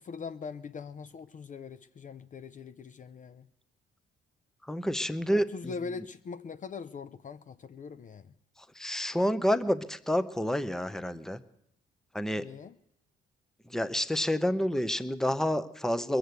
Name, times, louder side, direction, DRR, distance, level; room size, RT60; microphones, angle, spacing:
voice 1, 0.0-3.5 5.3-8.3 12.4-12.8, left 5 dB, 40° left, 0.5 m, -42 dB
voice 2, 4.7-5.5 8.8-11.4 12.1-12.5 13.7-16.2, equal, ahead, 0.7 m, -28 dB
21.0 x 7.9 x 8.2 m
cardioid pair, 90°, 20 cm